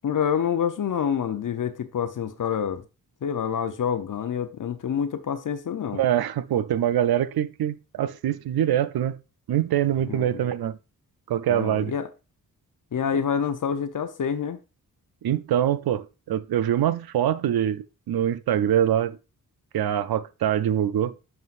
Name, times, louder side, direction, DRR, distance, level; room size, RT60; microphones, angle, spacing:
voice 1, 0.0-2.8 3.2-6.0 10.1-10.4 11.5-12.1 12.9-14.6, left 8 dB, 55° left, 0.7 m, -27 dB
voice 2, 5.9-9.2 9.5-10.8 11.3-11.9 15.2-19.2 19.7-21.1, right 10 dB, 80° right, 0.6 m, -24 dB
9.4 x 5.6 x 2.5 m
cardioid pair, 60°, 37 cm